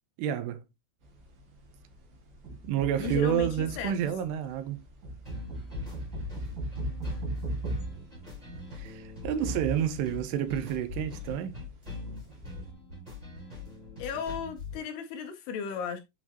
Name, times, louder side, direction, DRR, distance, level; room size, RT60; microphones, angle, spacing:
voice 1, 0.2-0.6 2.6-4.8 8.7-11.5, right 10 dB, 80° right, 2.6 m, -29 dB
sound 1, 1.0-12.7, right 2 dB, 50° right, 2.4 m, -39 dB
voice 2, 3.0-3.9 14.0-16.0, left 7 dB, 75° left, 2.5 m, -35 dB
sound 2, 5.2-14.8, left 4 dB, 10° right, 2.8 m, -42 dB
8.1 x 4.8 x 2.8 m
omnidirectional pair, 5.2 m